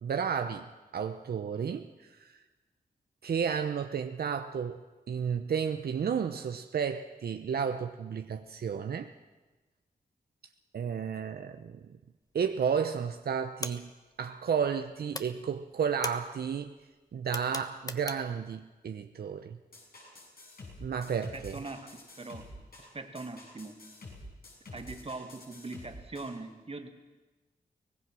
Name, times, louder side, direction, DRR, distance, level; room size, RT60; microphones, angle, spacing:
voice 1, 0.0-2.4 3.2-9.1 10.7-12.0 12.3-13.9 14.2-16.8 17.1-19.6 20.8-21.6, right 7 dB, 75° right, 7 dB, 0.8 m, -32 dB
sound 1, 12.3-12.8 13.1-14.8 15.1-18.5, left 2 dB, 20° left, 1.3 m, -41 dB
sound 2, 19.7-26.4, left 2 dB, 70° left, 6.6 m, -48 dB
voice 2, 21.3-21.8 22.2-22.5 22.8-23.7 24.7-26.9, right 3 dB, 40° right, 5 dB, 2.1 m, -41 dB
24.0 x 18.0 x 6.2 m, 1.2 s
cardioid pair, 70°, 16 cm